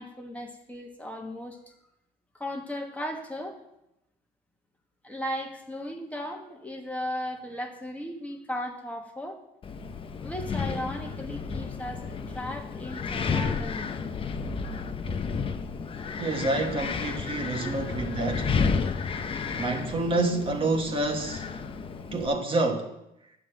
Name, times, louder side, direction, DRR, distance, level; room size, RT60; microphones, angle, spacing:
voice 1, 0.0-1.7 2.4-3.6 5.0-9.4 10.2-14.0 16.0-16.2 17.5-17.8, equal, 10° left, 1.3 m, -36 dB
Wind, 9.6-22.3, left 5 dB, 30° left, 0.7 m, -32 dB
voice 2, 16.2-18.5 19.5-21.5 22.1-22.9, right 2 dB, 30° right, 1.3 m, -28 dB
9.7 x 5.0 x 7.6 m
cardioid pair, 110°, 17 cm